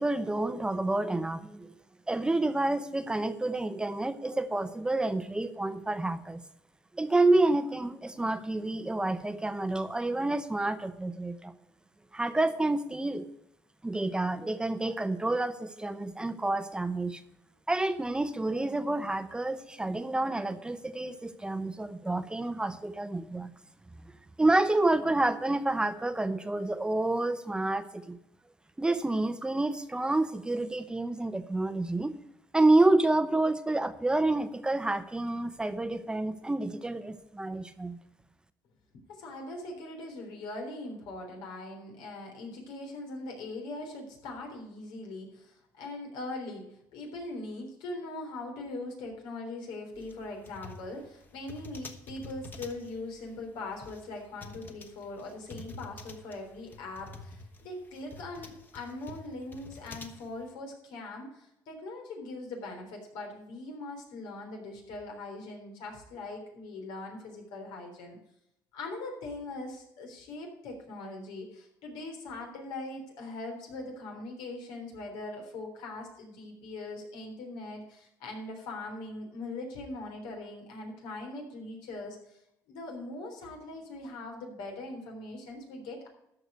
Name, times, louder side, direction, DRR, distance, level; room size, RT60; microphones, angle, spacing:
voice 1, 0.0-1.7 2.1-6.4 7.0-11.5 12.1-13.2 13.8-17.2 17.7-23.5 24.4-28.2 28.8-32.1 32.5-38.0, right 2 dB, 10° right, 12 dB, 0.7 m, -28 dB
voice 2, 39.1-46.7 46.9-68.2 68.7-82.4 82.7-86.1, left 2 dB, 85° left, 2 dB, 3.6 m, -41 dB
sound 1, 50.0-60.5, left 2 dB, 25° left, 1.3 m, -48 dB
13.5 x 4.9 x 8.0 m, 0.79 s
cardioid pair, 115°, 7 cm